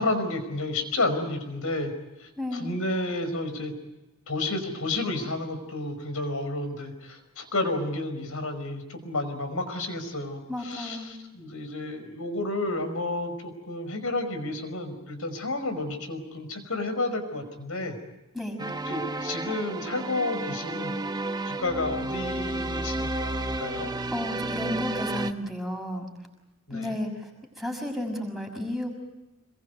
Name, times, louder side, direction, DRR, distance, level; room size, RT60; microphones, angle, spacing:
voice 1, 0.0-1.9 2.2-3.7 4.3-18.0 18.9-20.9 21.4-23.9 26.7-27.0, left 2 dB, 70° left, 9 dB, 5.3 m, -31 dB
voice 2, 2.4-2.7 10.5-11.1 18.3-18.6 24.1-26.1 26.7-27.3 27.6-28.9, left 1 dB, ahead, 2 dB, 6.1 m, -32 dB
sound 1, 18.6-25.3, right 2 dB, 20° right, 1.1 m, -32 dB
27.0 x 22.5 x 8.2 m, 1.0 s
head